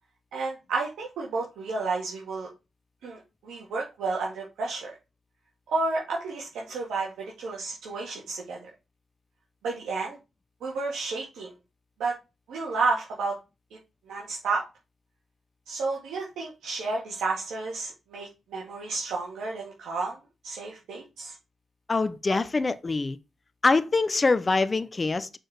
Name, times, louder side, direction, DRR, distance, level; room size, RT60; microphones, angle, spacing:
voice 1, 0.3-2.5 3.0-4.9 5.7-8.6 9.6-10.2 10.6-11.5 12.0-12.1 12.5-13.4 14.1-14.6 15.7-20.1 20.4-21.4 22.3-22.4, right 3 dB, 85° right, 1.9 m, -31 dB
voice 2, 21.9-23.2 23.6-25.4, left 3 dB, 35° left, 0.7 m, -24 dB
6.4 x 4.4 x 4.8 m
cardioid pair, 65°, 0 cm